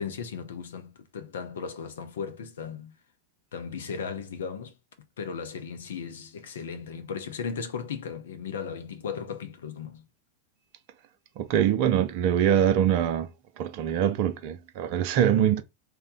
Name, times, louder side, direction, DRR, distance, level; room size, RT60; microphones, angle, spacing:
voice 1, 0.0-2.9 3.5-4.7 5.2-10.1, left 6 dB, 60° left, 0.6 m, -36 dB
voice 2, 11.4-13.3 13.6-15.6, right 9 dB, 45° right, 0.5 m, -23 dB
3.1 x 2.2 x 3.7 m
figure-of-eight pair, 90°, 0 cm